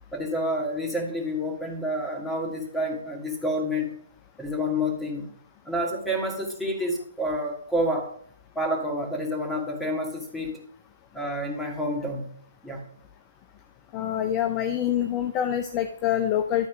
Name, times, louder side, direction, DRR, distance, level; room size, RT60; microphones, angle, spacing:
voice 1, 0.1-3.9 4.4-5.3 5.7-8.1 8.6-10.5 11.1-12.4 12.6-12.8, equal, 5° left, -1 dB, 2.3 m, -29 dB
voice 2, 13.9-16.7, left 10 dB, 25° left, 8 dB, 0.6 m, -26 dB
12.0 x 4.1 x 5.2 m, 0.62 s
figure-of-eight pair, 130°, 0 cm